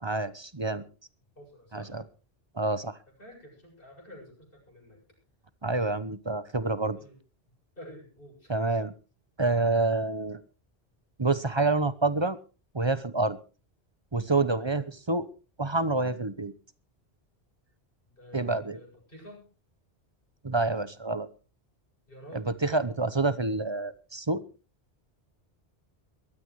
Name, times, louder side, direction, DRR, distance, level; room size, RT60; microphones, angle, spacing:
voice 1, 0.0-0.8 1.7-2.0 2.6-3.0 5.6-7.0 8.5-8.9 9.4-10.4 11.2-12.4 12.7-13.4 14.1-15.3 15.6-16.5 18.3-18.8 20.4-21.3 22.3-24.4, right 3 dB, 25° right, 14 dB, 0.9 m, -27 dB
voice 2, 1.4-2.0 3.2-5.0 7.0-7.1 7.8-8.5 14.6-14.8 18.2-19.5 22.1-22.6, equal, 55° left, 0 dB, 8.1 m, -49 dB
22.0 x 13.5 x 3.2 m, 0.34 s
omnidirectional pair, 1.1 m